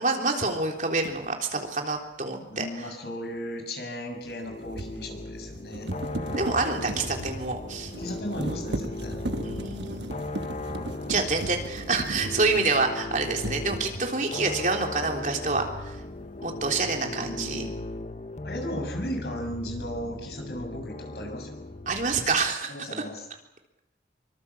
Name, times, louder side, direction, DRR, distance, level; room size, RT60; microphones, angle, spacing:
voice 1, 0.0-2.9 6.4-7.9 9.4-10.1 11.1-16.0 16.4-17.7 21.9-23.0, right 3 dB, 45° right, 2 dB, 3.6 m, -27 dB
sound 1, 1.0-1.2 4.2-13.0 13.4-14.2, right 1 dB, 85° right, 1.3 m, -36 dB
voice 2, 2.4-5.9 8.0-9.2 12.0-12.1 16.8-17.7 18.4-21.6 22.7-23.3, equal, 65° left, 3 dB, 6.9 m, -36 dB
sound 2, 4.5-22.5, left 2 dB, 40° left, 1.0 m, -37 dB
25.0 x 24.5 x 7.3 m, 0.87 s
head